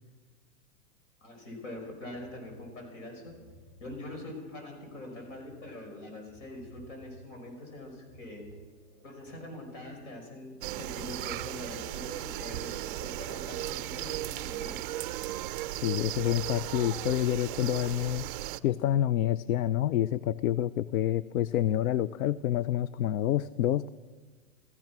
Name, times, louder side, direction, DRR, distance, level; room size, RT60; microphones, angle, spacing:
voice 1, 1.2-3.3 3.8-8.5 9.0-14.8, left 1 dB, 65° left, 2 dB, 6.2 m, -43 dB
sound 1, 1.4-10.1, right 1 dB, 30° left, 6.4 m, -57 dB
sound 2, 10.6-18.6, right 15 dB, 40° right, 0.4 m, -36 dB
voice 2, 15.7-18.3 18.6-23.9, left 12 dB, 85° left, 17 dB, 0.5 m, -28 dB
15.0 x 15.0 x 6.0 m, 1.4 s
supercardioid pair, 150°, 41 cm